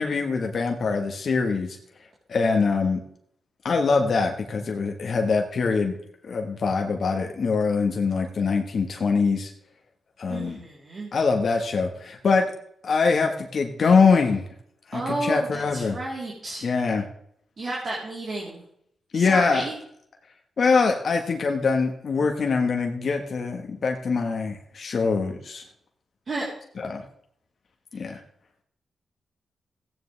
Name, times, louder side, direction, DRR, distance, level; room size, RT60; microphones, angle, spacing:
voice 1, 0.0-1.8 2.3-3.0 3.6-5.9 6.2-9.5 10.2-10.6 11.1-12.5 12.8-14.4 14.9-16.0 16.6-17.0 19.1-19.7 20.6-25.6 26.8-27.0 27.9-28.2, left 4 dB, 60° left, 4 dB, 1.3 m, -23 dB
voice 2, 10.3-11.1 14.9-16.7 17.6-18.6 19.1-19.7 26.3-26.5, right 2 dB, 50° right, -4 dB, 3.4 m, -31 dB
15.5 x 9.6 x 3.3 m, 0.70 s
cardioid pair, 80°, 0 cm